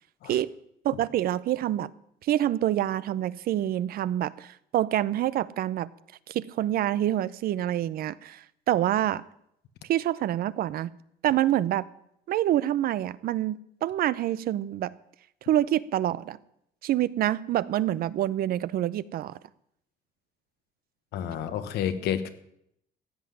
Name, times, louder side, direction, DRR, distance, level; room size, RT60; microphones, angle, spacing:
voice 1, 0.8-1.9 2.2-5.9 6.3-9.2 9.9-10.9 11.2-11.8 12.3-14.9 15.5-16.4 16.8-19.3, right 12 dB, 60° right, 18 dB, 0.6 m, -26 dB
voice 2, 21.1-22.3, left 9 dB, 75° left, 11 dB, 1.3 m, -30 dB
15.0 x 5.9 x 9.9 m, 0.75 s
cardioid pair, 110°, 17 cm